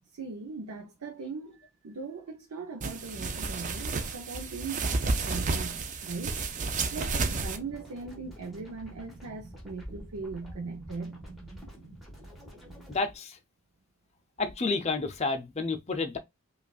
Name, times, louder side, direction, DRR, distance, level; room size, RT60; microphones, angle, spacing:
voice 1, 0.1-6.4 6.9-11.2, right 4 dB, 85° right, 0.6 m, -40 dB
sound 1, 2.8-7.6, right 3 dB, 35° right, 0.4 m, -31 dB
sound 2, 6.8-13.0, right 1 dB, ahead, 1.4 m, -47 dB
voice 2, 12.9-13.4 14.4-16.2, left 3 dB, 30° left, 0.5 m, -30 dB
5.1 x 2.4 x 2.3 m
head